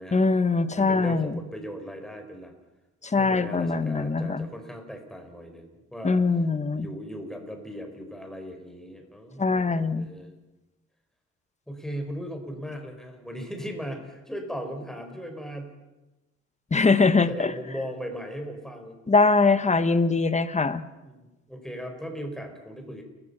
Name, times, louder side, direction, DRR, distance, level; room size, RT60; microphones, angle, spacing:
voice 1, 0.1-1.4 3.0-4.5 6.0-6.9 9.4-10.1 16.7-17.5 19.1-20.8, left 3 dB, 25° left, 12 dB, 1.4 m, -22 dB
voice 2, 0.8-2.5 3.2-6.2 6.7-10.3 11.7-15.7 17.3-19.0 21.0-23.0, equal, ahead, 4 dB, 5.1 m, -38 dB
30.0 x 15.5 x 5.7 m, 1.1 s
cardioid pair, 90°, 30 cm